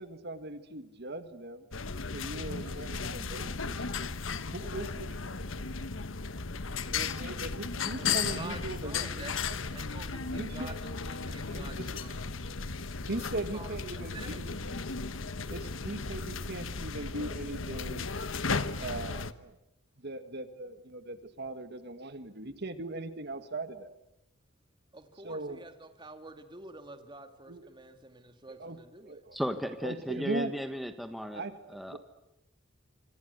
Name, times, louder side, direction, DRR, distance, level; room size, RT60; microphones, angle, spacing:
voice 1, 0.0-1.6 2.1-3.8 4.5-5.2 6.9-9.5 10.3-10.8 11.5-12.0 13.1-14.6 15.5-18.0 18.8-19.6 20.0-24.0 25.2-25.6 27.5-27.7 28.6-28.8 29.1-29.4 29.8-30.5 31.3-32.0, right 2 dB, 55° right, 10 dB, 1.7 m, -39 dB
sound 1, 1.7-19.3, left 5 dB, 80° left, 1.3 m, -35 dB
voice 2, 7.9-9.3 9.7-12.2 13.3-14.5 24.9-29.2, right 2 dB, 25° right, 7 dB, 2.4 m, -48 dB
voice 3, 29.3-31.4 31.7-32.0, equal, ahead, 7 dB, 1.4 m, -35 dB
26.5 x 26.5 x 8.2 m, 0.86 s
head